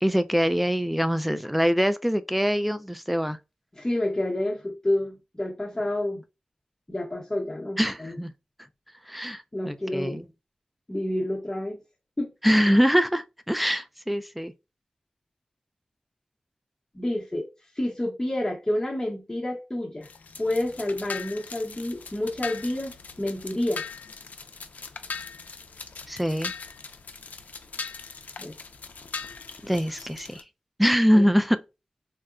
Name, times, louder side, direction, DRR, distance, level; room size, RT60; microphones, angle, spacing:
voice 1, 0.0-3.4 7.8-8.3 9.1-10.3 12.4-14.5 26.1-26.5 29.6-30.4 30.8-31.6, equal, ahead, 0.4 m, -23 dB
voice 2, 3.7-6.2 6.9-8.2 9.5-10.2 10.9-11.8 12.2-12.3 16.9-17.5 17.8-20.1 20.4-23.8 28.4-28.5 31.1-31.3, left 1 dB, 20° left, 0.8 m, -29 dB
sound 1, 20.0-30.4, left 5 dB, 75° left, 0.4 m, -40 dB
3.7 x 2.1 x 2.4 m
cardioid pair, 55°, 3 cm